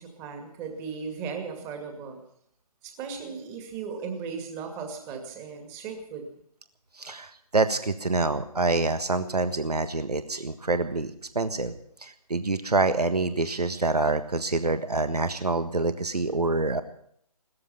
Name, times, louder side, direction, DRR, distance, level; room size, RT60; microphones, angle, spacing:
voice 1, 0.0-2.2 2.8-6.3, right 5 dB, 15° right, 4 dB, 2.2 m, -37 dB
voice 2, 7.0-11.7 12.0-16.8, right 3 dB, 75° right, 10 dB, 1.5 m, -26 dB
18.0 x 13.5 x 5.9 m, 0.66 s
figure-of-eight pair, 145°, 20 cm